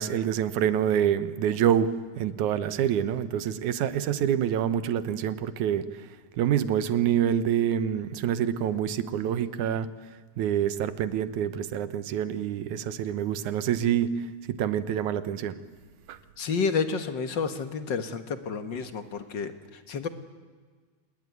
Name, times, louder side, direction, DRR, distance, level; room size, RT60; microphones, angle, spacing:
voice 1, 0.0-5.9 6.4-9.9 10.4-14.1 14.5-15.6 16.1-16.2, right 9 dB, 75° right, 13 dB, 2.5 m, -26 dB
voice 2, 16.4-20.1, left 5 dB, 50° left, 10 dB, 1.5 m, -30 dB
27.5 x 21.0 x 9.3 m, 1.5 s
omnidirectional pair, 3.5 m